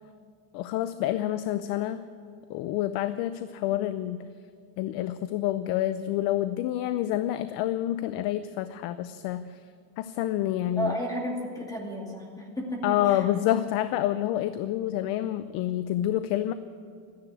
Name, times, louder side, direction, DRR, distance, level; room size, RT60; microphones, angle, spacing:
voice 1, 0.5-2.0 2.5-4.3 4.8-9.6 10.0-10.9 12.8-16.5, left 13 dB, 60° left, 12 dB, 0.6 m, -28 dB
voice 2, 10.8-13.2, equal, 10° left, -1 dB, 2.4 m, -33 dB
13.5 x 10.5 x 9.7 m, 2.3 s
cardioid pair, 165°, 42 cm